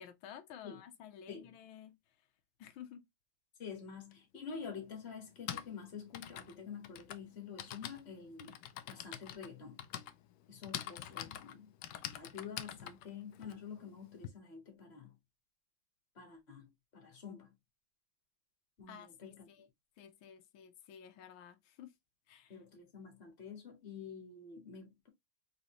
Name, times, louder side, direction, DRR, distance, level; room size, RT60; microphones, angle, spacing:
voice 1, 0.0-2.0 2.6-3.1 11.2-11.4 18.9-19.7 20.0-21.9 22.3-22.6, left 9 dB, 90° left, 1.5 m, -53 dB
voice 2, 3.6-8.6 8.9-9.8 10.5-11.7 12.1-15.2 16.2-17.5 18.8-19.5 22.5-25.1, left 6 dB, 35° left, 1.7 m, -48 dB
Typing, 4.1-4.2 5.2-14.3, left 11 dB, 75° left, 1.1 m, -46 dB
4.1 x 4.0 x 2.9 m
omnidirectional pair, 2.2 m